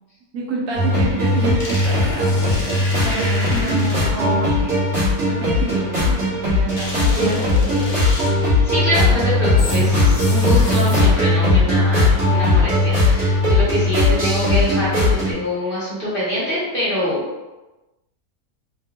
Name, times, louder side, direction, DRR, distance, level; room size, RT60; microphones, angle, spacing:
voice 1, 0.3-4.9 5.2-7.5 8.9-9.3, right 3 dB, 85° right, -2 dB, 1.2 m, -29 dB
sound 1, 0.7-15.3, left 2 dB, 50° right, 1.6 m, -18 dB
sound 2, 1.2-4.3 6.8-8.6 9.6-11.3, left 1 dB, 90° left, 1.3 m, -30 dB
voice 2, 8.6-17.2, equal, 40° left, -9 dB, 1.4 m, -24 dB
3.7 x 2.5 x 2.3 m, 1.1 s
omnidirectional pair, 1.6 m